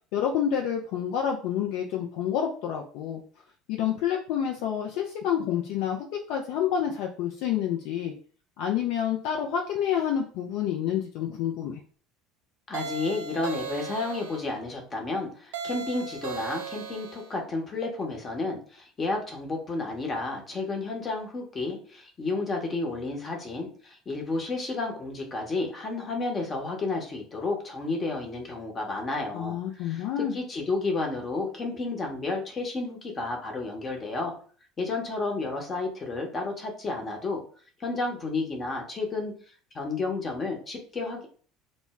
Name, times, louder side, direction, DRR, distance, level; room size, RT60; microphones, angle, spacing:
voice 1, 0.1-3.2 3.7-8.1 8.6-11.8 29.3-30.3, left 9 dB, 60° left, 1 dB, 0.3 m, -28 dB
voice 2, 12.7-30.1 30.3-34.3 34.8-37.4 37.8-39.3 39.7-41.3, left 3 dB, 30° left, 2 dB, 0.8 m, -31 dB
sound 1, 12.7-14.5 15.5-17.3, right 5 dB, 70° right, 0.4 m, -37 dB
2.0 x 2.0 x 3.5 m, 0.43 s
figure-of-eight pair, 65°, 0 cm